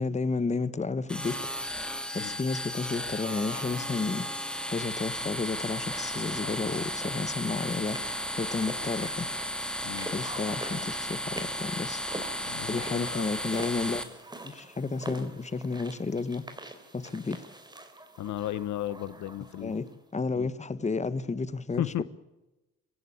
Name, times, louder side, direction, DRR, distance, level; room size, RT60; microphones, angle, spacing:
voice 1, 0.0-1.4 2.1-4.4 4.7-8.1 8.3-9.3 10.1-12.0 12.7-14.0 14.4-16.5 16.9-17.4 19.6-19.9 20.1-22.0, left 4 dB, 25° left, 1.4 m, -32 dB
sound 1, 1.1-14.0, equal, 5° left, 2.6 m, -34 dB
sound 2, 5.9-20.0, right 1 dB, 15° right, 3.6 m, -45 dB
voice 2, 6.4-6.8 9.8-10.1 12.4-13.3 18.2-19.9 20.4-20.5 21.8-22.0, left 12 dB, 70° left, 0.9 m, -35 dB
25.0 x 16.0 x 8.4 m
cardioid pair, 90°, 30 cm